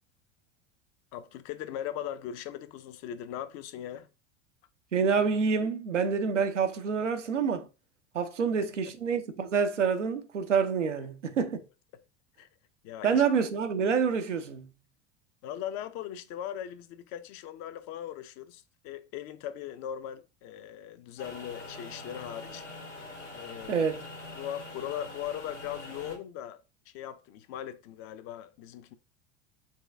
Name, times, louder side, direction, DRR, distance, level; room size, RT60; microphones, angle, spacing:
voice 1, 1.1-4.1 12.4-12.5 12.8-13.2 15.4-22.6 23.3-23.9 24.3-26.6 26.9-28.9, left 10 dB, 45° left, 0.6 m, -39 dB
voice 2, 4.9-7.7 8.1-11.6 13.0-14.7 23.7-24.0, right 6 dB, 90° right, 0.6 m, -27 dB
sound 1, 21.2-26.2, left 2 dB, 80° left, 1.3 m, -44 dB
4.4 x 2.3 x 3.3 m
figure-of-eight pair, 80°, 35 cm